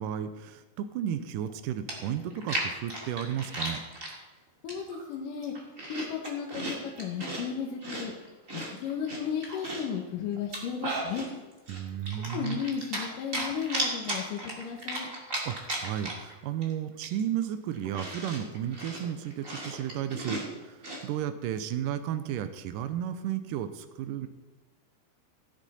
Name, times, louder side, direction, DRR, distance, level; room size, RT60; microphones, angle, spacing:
voice 1, 0.0-3.8 11.7-12.6 15.5-24.3, right 10 dB, 80° right, 10 dB, 1.9 m, -33 dB
Chewing mastication, 1.5-1.6 1.9-4.1 4.7-5.0 5.4-7.4 7.8-9.9 10.4-11.3 11.7-13.1 13.3-16.3 16.6-16.7 17.0-21.0, right 1 dB, 25° right, 2.0 m, -35 dB
voice 2, 4.6-5.5 5.9-8.1 8.5-11.3 12.3-15.1, left 7 dB, 65° left, -1 dB, 2.4 m, -34 dB
16.5 x 10.0 x 4.2 m, 1.2 s
omnidirectional pair, 4.6 m